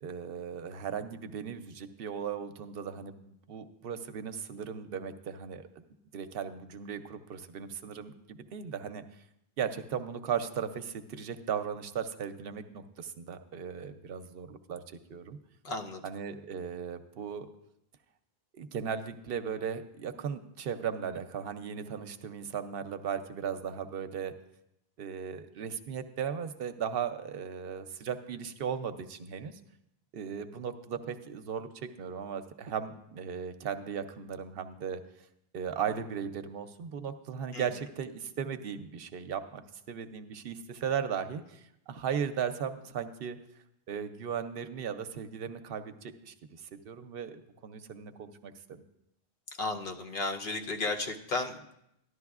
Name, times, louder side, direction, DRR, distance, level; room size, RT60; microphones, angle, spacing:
voice 1, 0.0-5.8 6.1-9.0 9.6-14.8 15.1-15.4 16.0-17.5 18.5-24.3 25.0-29.6 30.1-35.0 35.5-43.4 43.9-48.8, right 7 dB, 70° right, 9 dB, 0.8 m, -37 dB
voice 2, 15.6-16.0 37.5-37.7 49.6-51.7, left 3 dB, 60° left, 2 dB, 0.9 m, -34 dB
13.5 x 11.0 x 2.4 m, 0.80 s
omnidirectional pair, 1.0 m